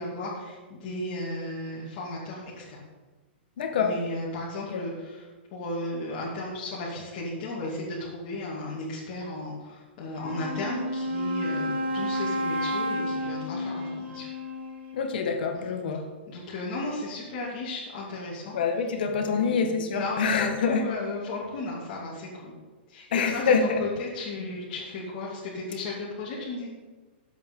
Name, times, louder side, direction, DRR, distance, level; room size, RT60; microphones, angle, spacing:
voice 1, 0.0-2.9 3.8-14.3 15.5-15.7 16.3-22.5 22.9-26.7, left 2 dB, 35° left, -7 dB, 2.5 m, -35 dB
voice 2, 3.6-3.9 4.7-4.8 14.9-16.0 18.5-20.8 23.1-23.8, left 5 dB, 55° left, 5 dB, 1.7 m, -26 dB
Wind instrument woodwind instrument, 10.2-15.1, equal, 80° right, 3.1 m, -31 dB
11.5 x 7.7 x 5.5 m, 1.3 s
hypercardioid pair, 175°, 6 cm